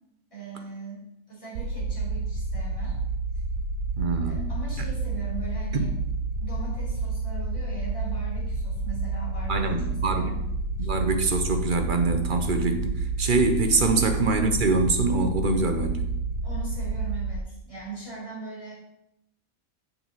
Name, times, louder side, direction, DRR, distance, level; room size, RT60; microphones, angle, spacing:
voice 1, 0.3-3.0 4.2-5.9 6.4-10.4 10.8-10.9 13.7-14.0 16.4-18.7, right 4 dB, 25° left, -7 dB, 3.5 m, -40 dB
sound 1, 1.6-17.4, right 3 dB, 90° right, 1.1 m, -29 dB
voice 2, 4.0-4.5 5.7-5.9 9.5-10.4 10.8-16.1, right 3 dB, 45° right, 5 dB, 0.8 m, -24 dB
6.9 x 6.3 x 4.1 m, 0.82 s
omnidirectional pair, 1.5 m